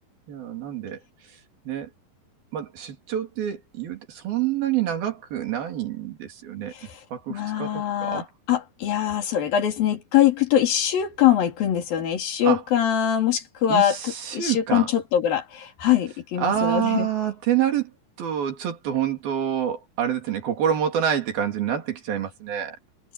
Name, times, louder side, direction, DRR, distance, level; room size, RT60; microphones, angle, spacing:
voice 1, 0.3-1.0 1.6-1.9 2.5-8.3 12.4-12.6 13.7-14.9 16.4-17.9 18.2-22.8, right 10 dB, 85° right, 5.0 m, -27 dB
voice 2, 7.3-8.2 8.5-17.1, left 10 dB, 75° left, 4.5 m, -23 dB
omnidirectional pair, 4.1 m